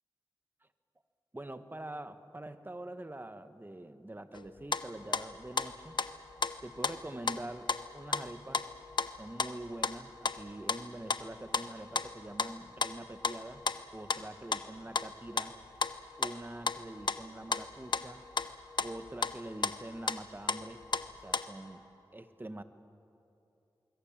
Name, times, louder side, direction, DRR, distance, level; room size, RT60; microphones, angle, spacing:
voice 1, 1.3-6.0 6.6-8.6 9.2-13.6 13.9-15.6 16.2-18.2 18.8-20.8 21.2-21.8 22.1-22.6, right 1 dB, 25° right, 10 dB, 1.5 m, -45 dB
sound 1, 4.3-4.8 5.1-7.4 7.7-10.0 10.2-10.8 11.1-11.2 11.5-11.7 11.9-12.5 12.8-13.4 13.7-13.8 14.1-14.2 14.5-14.6 14.9-15.5 15.8-15.9 16.2-17.2 17.5-17.6 17.9-18.5 18.8-19.4 19.6-19.8 20.1-20.2 20.5-21.4, left 4 dB, 65° left, 1.0 m, -32 dB
26.0 x 22.5 x 7.4 m, 2.7 s
cardioid pair, 45°, 9 cm